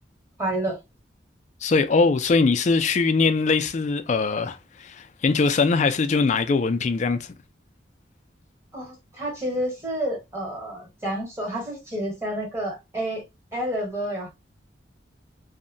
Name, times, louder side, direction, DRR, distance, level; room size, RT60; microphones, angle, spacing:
voice 1, 0.4-0.8 8.7-13.2 13.5-14.3, right 1 dB, 15° right, 1.1 m, -29 dB
voice 2, 1.6-7.3, left 4 dB, 40° left, 0.3 m, -22 dB
2.7 x 2.1 x 2.6 m
head